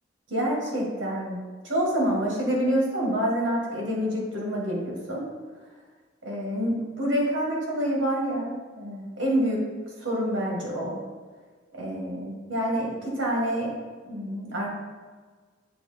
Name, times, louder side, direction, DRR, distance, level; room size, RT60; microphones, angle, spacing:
voice 1, 0.3-1.4 1.6-5.2 6.2-9.6 10.0-11.0 11.7-13.7 14.0-14.7, equal, 75° right, -3 dB, 1.7 m, -27 dB
7.7 x 2.9 x 4.3 m, 1.5 s
head